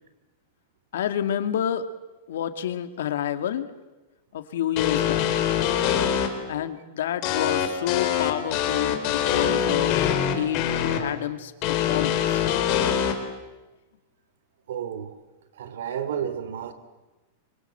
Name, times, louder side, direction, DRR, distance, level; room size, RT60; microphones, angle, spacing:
voice 1, 0.9-1.9 2.3-3.7 4.3-5.3 6.5-10.0 10.4-12.5, left 10 dB, 80° left, 2.4 m, -29 dB
sound 1, 4.8-6.3 7.2-11.0 11.6-13.1, left 10 dB, 35° left, 4.0 m, -23 dB
voice 2, 14.7-15.1 15.5-16.7, right 8 dB, 80° right, 3.3 m, -31 dB
28.5 x 25.0 x 8.1 m
supercardioid pair, 165°, 0 cm